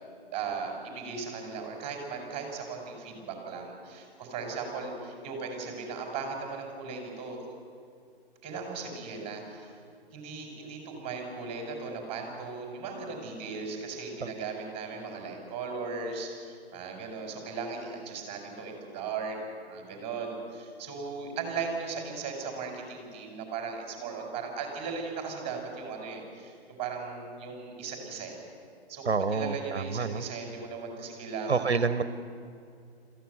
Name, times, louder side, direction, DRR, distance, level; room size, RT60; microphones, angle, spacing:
voice 1, 0.3-7.4 8.4-9.8 10.1-19.4 19.6-28.4 28.9-31.8, right 5 dB, 20° right, 2 dB, 5.1 m, -37 dB
voice 2, 29.0-30.2 31.5-32.0, right 4 dB, 80° right, 12 dB, 1.0 m, -28 dB
22.0 x 15.0 x 7.9 m, 2.4 s
figure-of-eight pair, 130°, 32 cm